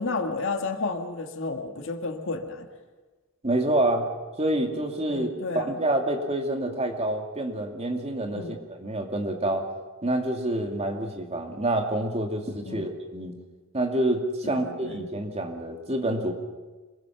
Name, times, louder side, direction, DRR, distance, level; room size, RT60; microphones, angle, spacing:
voice 1, 0.0-2.7 5.1-5.7 8.3-8.6 12.6-12.8 14.4-15.1, left 3 dB, 65° left, 5 dB, 1.9 m, -32 dB
voice 2, 3.4-4.1 4.4-5.3 5.5-9.7 10.0-13.4 13.7-16.3, right 1 dB, 30° right, 4 dB, 2.4 m, -27 dB
26.0 x 22.0 x 5.9 m, 1.3 s
head